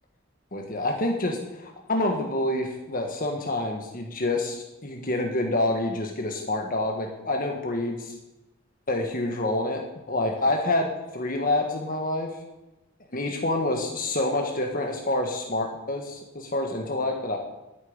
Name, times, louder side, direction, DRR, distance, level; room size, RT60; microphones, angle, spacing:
voice 1, 0.5-8.1 8.9-9.8 10.1-12.4 13.1-17.4, left 2 dB, 40° left, 2 dB, 1.6 m, -27 dB
11.0 x 9.0 x 9.8 m, 0.98 s
head